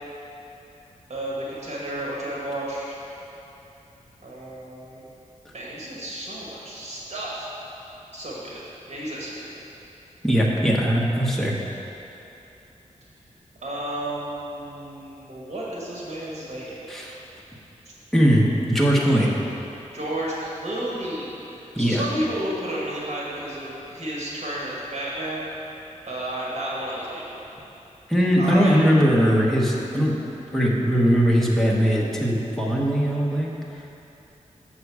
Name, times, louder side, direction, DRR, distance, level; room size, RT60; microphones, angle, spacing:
voice 1, 1.1-3.0 4.2-5.0 5.5-7.5 8.1-8.6 8.9-9.6 13.6-16.7 19.0-19.2 19.9-25.5 26.1-27.4 28.4-28.8, right 1 dB, 55° right, -6 dB, 1.7 m, -32 dB
voice 2, 10.2-11.5 16.9-17.2 18.1-19.3 21.7-22.0 28.1-30.1 30.5-33.5, equal, ahead, -4 dB, 1.0 m, -20 dB
7.1 x 6.7 x 4.7 m, 2.9 s
wide cardioid pair, 135°, 13 cm